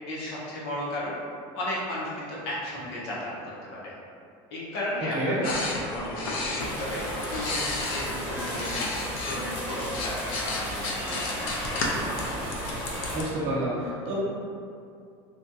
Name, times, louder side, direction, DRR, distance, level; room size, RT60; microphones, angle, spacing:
voice 1, 0.1-1.2 1.5-3.3 3.7-3.9 4.5-8.9 9.2-11.8, left 1 dB, 75° left, -6 dB, 0.9 m, -34 dB
sound 1, 5.4-9.4 9.7-13.2, left 2 dB, 50° left, 0.4 m, -33 dB
sound 2, 6.6-13.2, equal, 15° left, 0.8 m, -34 dB
voice 2, 13.1-14.1, right 1 dB, 40° right, -6 dB, 0.8 m, -29 dB
3.0 x 2.4 x 2.7 m, 2.4 s
cardioid pair, 170°, 13 cm